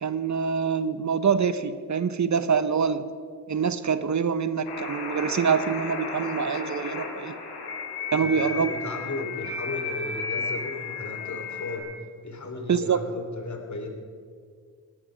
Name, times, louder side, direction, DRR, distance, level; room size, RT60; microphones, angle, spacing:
voice 1, 0.0-3.0 3.5-7.3 8.1-8.7 12.7-13.0, right 6 dB, 45° right, 13 dB, 1.0 m, -25 dB
sound 1, 4.6-11.8, left 4 dB, 80° left, 4.3 m, -34 dB
voice 2, 8.2-11.9 12.2-13.9, left 3 dB, 45° left, 4 dB, 3.4 m, -35 dB
18.0 x 13.5 x 5.1 m, 2.1 s
supercardioid pair, 45°, 40 cm